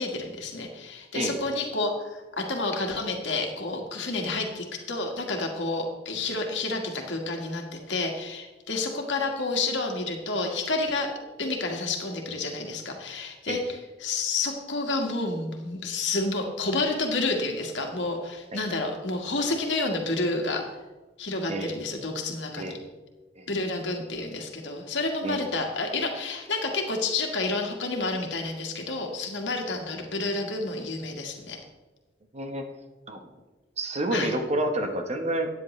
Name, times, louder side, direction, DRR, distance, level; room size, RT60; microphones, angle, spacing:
voice 1, 0.0-11.1 11.4-20.6 21.2-22.8 23.5-31.6 34.1-34.3, left 3 dB, 90° left, 2 dB, 1.6 m, -30 dB
voice 2, 32.3-32.7 33.1-33.3 33.8-35.5, right 1 dB, 40° right, 5 dB, 1.1 m, -29 dB
13.5 x 9.5 x 3.2 m, 1.2 s
head